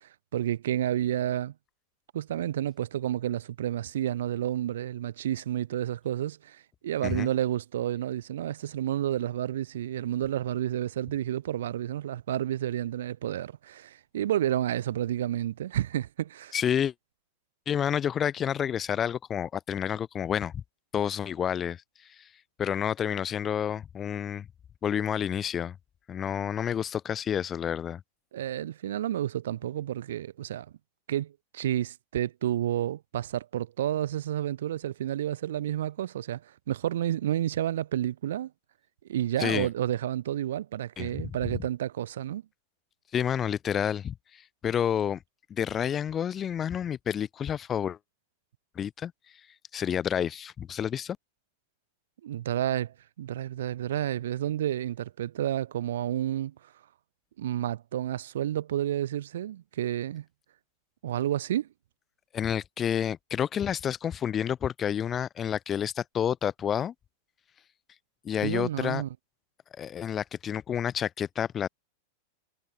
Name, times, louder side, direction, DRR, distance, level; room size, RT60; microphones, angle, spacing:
voice 1, 0.0-1.5 2.1-16.5 28.3-30.7 31.1-36.4 36.7-38.5 39.1-42.4 52.2-56.5 57.4-60.2 61.0-61.7 68.4-69.1, right 11 dB, 60° right, 2.2 m, -30 dB
voice 2, 16.5-16.9 17.7-20.6 20.9-21.8 22.1-22.3 22.6-24.5 24.8-25.7 26.1-28.0 39.4-39.7 41.0-41.4 43.1-45.2 45.5-48.0 48.7-49.1 49.7-51.2 62.3-66.9 68.2-69.0 69.8-71.7, left 9 dB, 25° left, 1.3 m, -29 dB
figure-of-eight pair, 90°, 0 cm